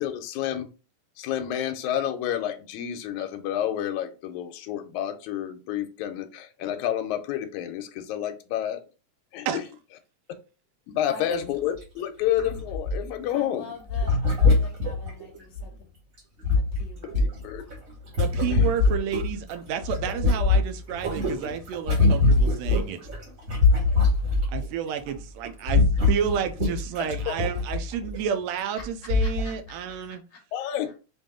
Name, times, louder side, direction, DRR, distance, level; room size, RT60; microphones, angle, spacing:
voice 1, 0.0-0.7 1.2-8.8 9.3-9.6 10.9-13.7 17.2-17.6 18.5-18.7 30.5-30.9, left 11 dB, 85° left, 2.0 m, -29 dB
voice 2, 11.0-11.4 13.3-15.8 16.4-17.4 28.8-30.9, left 4 dB, 45° left, 1.7 m, -45 dB
sound 1, 11.3-11.4 11.7-11.8 12.4-13.3 13.9-15.7 16.2-19.6 19.8-24.7 25.0-25.2 25.4-28.2 28.8-28.9 29.1-29.5 30.0-30.1, left 3 dB, 40° right, 1.3 m, -23 dB
voice 3, 18.2-23.0 24.5-30.2, right 8 dB, 75° right, 1.7 m, -31 dB
5.3 x 2.7 x 3.6 m
omnidirectional pair, 3.4 m